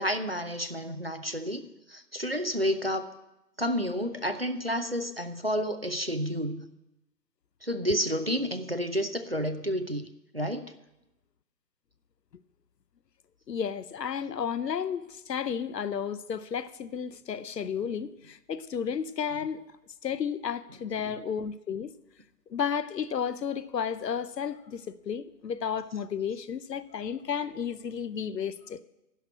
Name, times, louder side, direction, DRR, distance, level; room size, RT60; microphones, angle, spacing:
voice 1, 0.0-3.1 3.6-6.6 7.6-10.1 10.3-10.7 21.0-21.1, equal, 40° right, 0.4 m, -30 dB
voice 2, 13.5-19.6 20.0-21.9 22.5-28.8, left 7 dB, 75° left, 0.8 m, -32 dB
11.0 x 6.0 x 9.0 m
hypercardioid pair, 175°, 49 cm